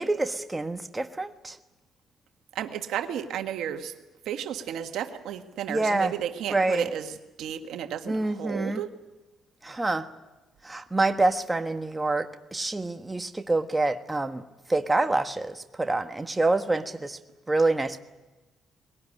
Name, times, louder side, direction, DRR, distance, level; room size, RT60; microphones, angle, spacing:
voice 1, 0.0-1.6 5.7-6.1 6.5-6.9 8.1-8.8 9.6-10.1 10.6-14.4 14.7-17.2 17.5-18.0, right 2 dB, 15° right, 7 dB, 1.3 m, -26 dB
voice 2, 2.5-3.9 4.2-8.9, right 9 dB, 80° right, 6 dB, 1.6 m, -33 dB
21.0 x 18.5 x 9.9 m, 1.1 s
cardioid pair, 90°, 0 cm